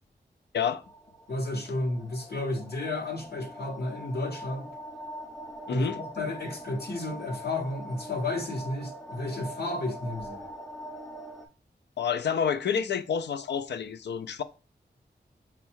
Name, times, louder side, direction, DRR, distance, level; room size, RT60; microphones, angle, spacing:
sound 1, 0.8-11.5, equal, 5° left, 0.5 m, -43 dB
voice 1, 1.3-4.7 5.7-10.4, left 2 dB, 70° left, 0.9 m, -32 dB
voice 2, 5.7-6.0 12.0-14.4, left 7 dB, 85° left, 0.4 m, -29 dB
4.4 x 2.3 x 4.4 m
wide cardioid pair, 100°, 17 cm